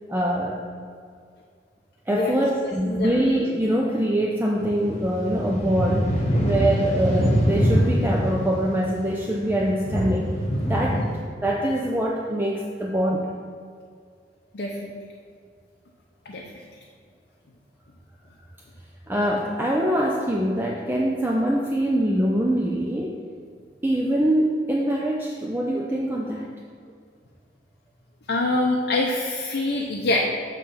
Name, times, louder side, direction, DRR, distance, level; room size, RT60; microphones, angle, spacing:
voice 1, 0.1-0.6 2.1-10.3 10.6-11.1 11.4-13.3 19.1-23.2 23.8-26.5, right 1 dB, 10° right, -2 dB, 0.4 m, -24 dB
sound 1, 4.6-11.2, equal, 40° left, 1.1 m, -24 dB
voice 2, 14.5-15.0 16.3-16.4 28.3-30.2, left 2 dB, 65° left, -1 dB, 0.6 m, -25 dB
7.0 x 3.2 x 5.8 m, 2.1 s
head